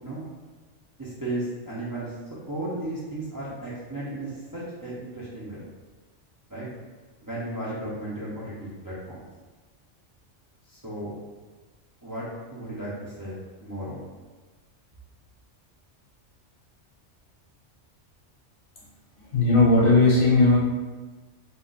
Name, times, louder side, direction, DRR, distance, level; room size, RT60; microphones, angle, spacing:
voice 1, 1.0-2.1 2.5-5.6 6.5-6.7 7.2-9.2 10.7-11.1 12.0-14.0, right 1 dB, 30° right, -9 dB, 0.4 m, -35 dB
voice 2, 19.3-20.6, left 2 dB, 50° left, -6 dB, 1.0 m, -17 dB
2.4 x 2.3 x 3.7 m, 1.3 s
omnidirectional pair, 1.3 m